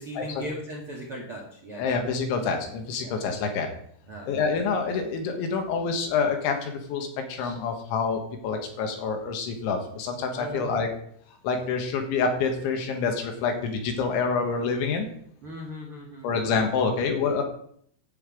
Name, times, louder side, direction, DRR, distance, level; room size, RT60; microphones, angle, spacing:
voice 1, 0.0-2.0 3.0-3.2 4.0-4.5 10.3-10.8 15.4-17.0, equal, 55° right, -2 dB, 1.5 m, -39 dB
voice 2, 1.8-3.7 4.3-10.9 11.4-15.1 16.2-17.4, left 5 dB, 70° left, 4 dB, 3.6 m, -27 dB
11.5 x 5.8 x 8.4 m, 0.64 s
omnidirectional pair, 5.9 m